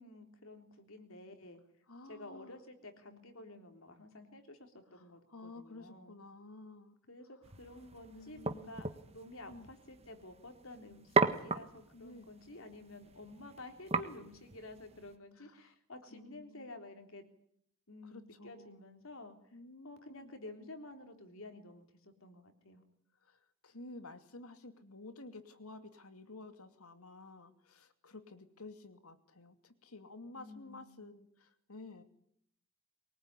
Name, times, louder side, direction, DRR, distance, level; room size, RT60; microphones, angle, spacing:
voice 1, 0.0-1.6 2.1-6.1 7.1-17.2 17.9-19.4 19.8-22.8 30.3-31.1, left 2 dB, 65° left, 6 dB, 3.7 m, -51 dB
voice 2, 1.9-2.5 5.3-6.9 8.1-8.7 9.5-9.7 11.9-12.3 16.1-16.7 18.1-18.8 19.5-20.3 23.6-32.0, left 2 dB, 85° left, 9 dB, 2.6 m, -52 dB
sound 1, 7.4-15.1, right 3 dB, 30° right, 1.5 m, -38 dB
23.5 x 20.0 x 9.9 m, 0.69 s
head